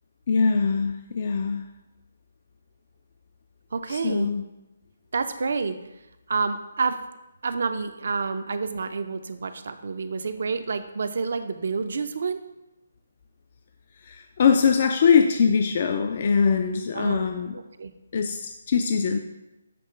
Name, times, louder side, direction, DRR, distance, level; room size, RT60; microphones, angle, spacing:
voice 1, 0.3-1.7 3.9-4.5 14.0-17.6 18.1-19.2, left 6 dB, 45° left, 6 dB, 0.4 m, -22 dB
voice 2, 3.7-4.3 5.1-5.8 6.3-7.0 7.4-12.4 16.9-17.9, right 4 dB, 65° right, 9 dB, 0.6 m, -29 dB
7.5 x 3.0 x 4.6 m, 0.96 s
hypercardioid pair, 160°, 0 cm